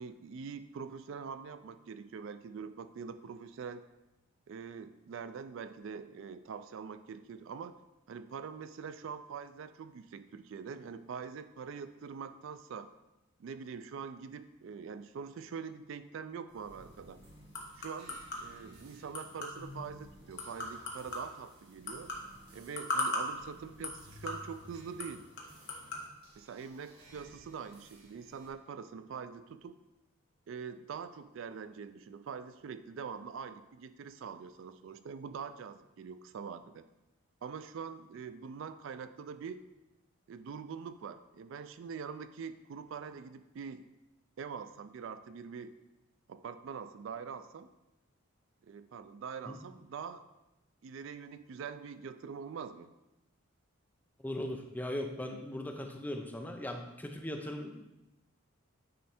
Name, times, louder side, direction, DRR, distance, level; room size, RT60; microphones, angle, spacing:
voice 1, 0.0-3.8 4.5-7.8 8.1-12.9 13.4-17.2 17.8-22.1 22.5-25.3 26.4-29.8 30.5-36.9 37.4-39.6 40.3-43.9 44.4-45.7 46.3-47.7 48.6-50.2 50.8-52.9, right 6 dB, 60° right, 11 dB, 0.3 m, -44 dB
sound 1, 16.5-28.5, right 1 dB, 80° right, 1.6 m, -57 dB
sound 2, 16.6-26.1, left 1 dB, 55° left, 1.2 m, -41 dB
voice 2, 54.2-57.9, left 1 dB, 10° left, 3 dB, 0.5 m, -39 dB
9.1 x 3.2 x 4.3 m, 0.96 s
head